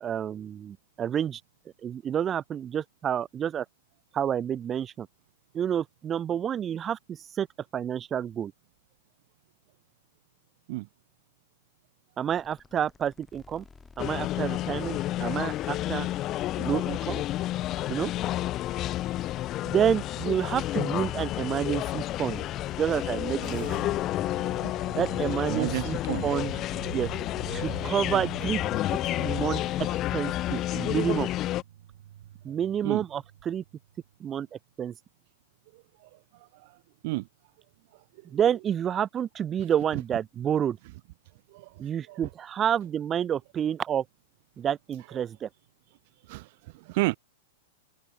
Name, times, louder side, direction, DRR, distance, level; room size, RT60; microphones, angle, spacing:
voice 1, 0.0-1.4 1.8-3.7 4.1-5.1 5.5-7.5 7.7-8.5 12.2-13.6 14.0-16.1 16.6-17.2 17.9-18.1 19.6-22.4 22.8-23.7 25.0-26.0 26.2-26.6 26.9-27.1 27.5-28.6 29.2-29.6 30.1-31.3 32.4-33.6 34.2-34.9 38.3-40.8 41.8-44.0 44.6-45.5, right 9 dB, 25° right, 1.9 m, -29 dB
sound 1, 12.3-28.0, left 4 dB, 15° left, 7.7 m, -54 dB
sound 2, 14.0-31.6, left 14 dB, 35° left, 0.3 m, -30 dB
sound 3, 23.4-34.0, right 11 dB, 70° right, 3.3 m, -45 dB
voice 2, 25.5-26.2 32.8-33.0 35.7-36.1 36.5-36.7 37.0-37.3 41.5-41.7 42.1-42.2 46.3-46.5 46.7-47.2, right 23 dB, 55° right, 0.5 m, -31 dB
hypercardioid pair, 110°, 0 cm